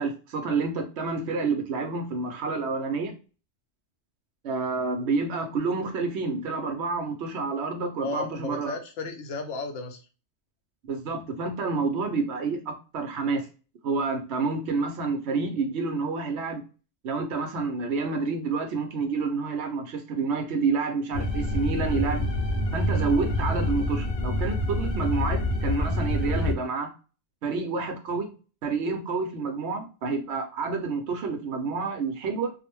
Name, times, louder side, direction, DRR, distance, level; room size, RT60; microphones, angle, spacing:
voice 1, 0.0-3.1 4.4-8.8 10.8-13.5 13.8-16.6 17.0-22.3 22.7-26.9 27.4-28.3 28.6-32.5, right 4 dB, 70° right, 5 dB, 0.9 m, -29 dB
voice 2, 8.0-10.0, left 4 dB, 85° left, 5 dB, 1.0 m, -34 dB
sound 1, 21.1-26.5, left 1 dB, 60° left, 0.7 m, -27 dB
2.5 x 2.1 x 3.0 m, 0.34 s
omnidirectional pair, 1.2 m